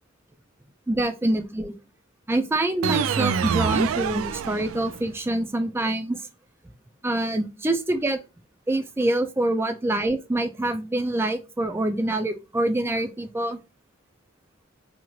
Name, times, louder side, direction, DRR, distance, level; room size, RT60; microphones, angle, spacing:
voice 1, 0.9-1.7 2.3-6.2 7.0-8.2 8.7-13.6, right 1 dB, 10° right, 0.4 m, -25 dB
sound 1, 2.8-5.1, right 7 dB, 85° right, 0.3 m, -26 dB
3.0 x 2.9 x 2.4 m
head